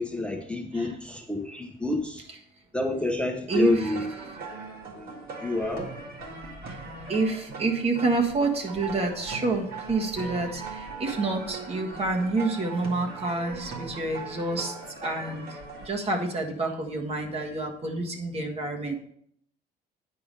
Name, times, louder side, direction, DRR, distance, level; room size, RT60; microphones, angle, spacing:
voice 1, 0.0-2.2 2.7-4.1 4.9-5.9, left 2 dB, 5° left, 2 dB, 0.8 m, -28 dB
voice 2, 3.5-4.0 7.1-19.0, right 3 dB, 35° right, 2 dB, 1.5 m, -28 dB
sound 1, 3.5-15.9, right 4 dB, 65° right, 1.9 m, -40 dB
9.4 x 4.8 x 5.3 m, 0.69 s
cardioid pair, 110°, 17 cm